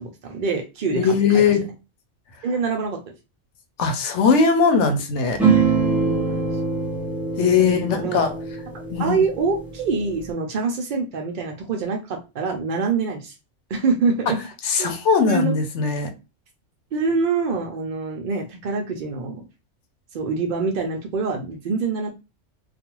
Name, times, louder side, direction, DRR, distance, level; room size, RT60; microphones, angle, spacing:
voice 1, 0.0-1.5 2.4-3.0 6.1-6.6 7.6-7.7 7.9-8.2 9.0-13.3 13.7-14.4 14.8-14.9 15.3-15.5 16.9-19.4 20.1-22.1, right 4 dB, 65° right, 0.5 m, -25 dB
voice 2, 1.0-1.7 3.8-5.4 7.4-8.3 8.9-9.2 14.6-16.1, left 5 dB, 70° left, 0.9 m, -19 dB
sound 1, 5.4-10.3, right 5 dB, ahead, 0.6 m, -24 dB
2.4 x 2.3 x 2.9 m
omnidirectional pair, 1.3 m